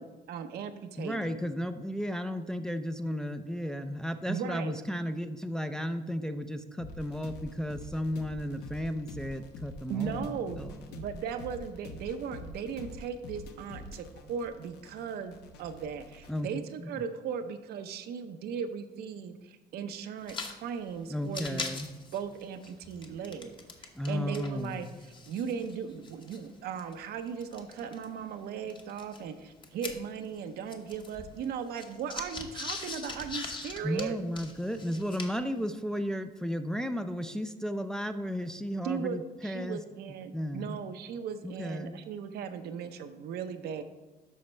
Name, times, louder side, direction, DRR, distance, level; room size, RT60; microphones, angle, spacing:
voice 1, 0.0-1.3 4.3-4.8 9.9-21.6 22.1-24.9 25.3-34.2 38.8-43.8, right 7 dB, 70° right, 8 dB, 0.7 m, -37 dB
voice 2, 1.0-10.8 16.3-16.5 16.8-17.0 21.1-21.9 23.9-24.8 33.8-39.8 40.3-40.8 41.4-42.0, equal, 5° left, 7 dB, 0.4 m, -34 dB
sound 1, 6.8-16.4, left 2 dB, 80° left, 0.9 m, -46 dB
sound 2, 20.2-20.6 20.8-20.9 21.2-24.1 24.3-28.1 28.7-30.4 30.7-35.5, left 3 dB, 30° left, 1.0 m, -41 dB
12.0 x 4.3 x 3.2 m, 1.2 s
cardioid pair, 110°, 17 cm